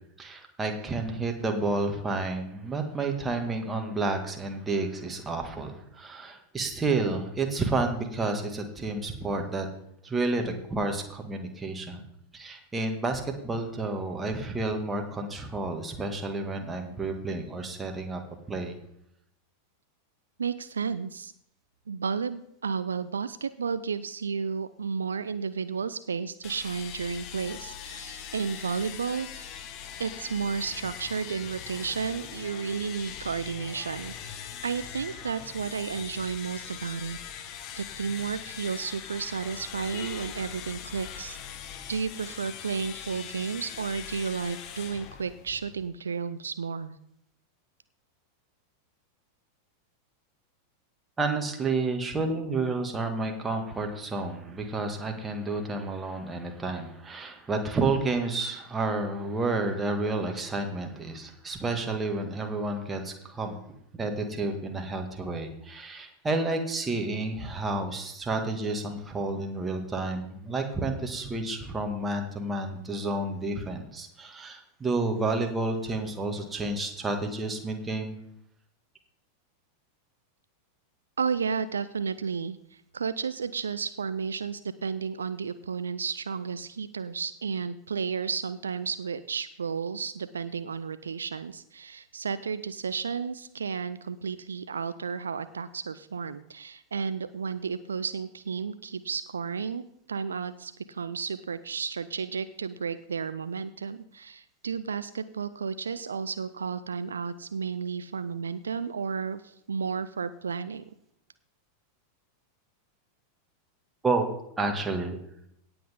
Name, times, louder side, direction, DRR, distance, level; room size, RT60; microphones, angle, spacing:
voice 1, 0.2-9.7 10.0-12.0 12.3-18.2 18.5-18.7 51.2-63.5 64.0-78.2 114.0-114.3 114.6-115.2, right 3 dB, 15° right, 3 dB, 1.9 m, -30 dB
voice 2, 20.4-21.3 21.9-29.6 30.0-37.2 37.8-47.0 81.2-99.8 100.1-110.8, right 6 dB, 70° right, 14 dB, 0.4 m, -32 dB
sound 1, 26.4-45.9, left 8 dB, 40° left, 1.2 m, -41 dB
17.5 x 7.8 x 3.7 m, 0.75 s
figure-of-eight pair, 90°, 0 cm